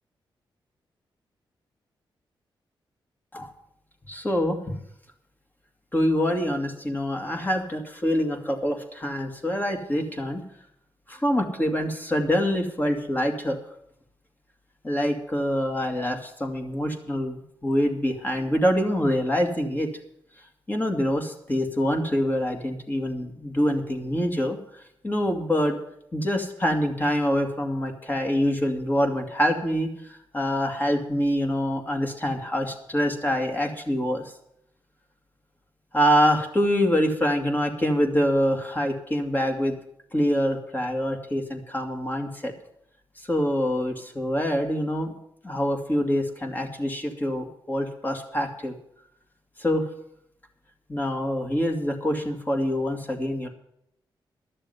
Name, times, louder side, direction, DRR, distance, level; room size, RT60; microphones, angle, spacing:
voice 1, 4.1-4.8 5.9-10.4 11.1-13.6 14.8-19.9 20.7-25.8 26.1-34.2 35.9-39.8 40.1-42.5 43.2-45.1 45.4-48.7 49.6-49.9 50.9-53.5, equal, 20° left, 4 dB, 2.2 m, -25 dB
12.5 x 6.9 x 9.5 m, 0.75 s
cardioid pair, 90°, 9 cm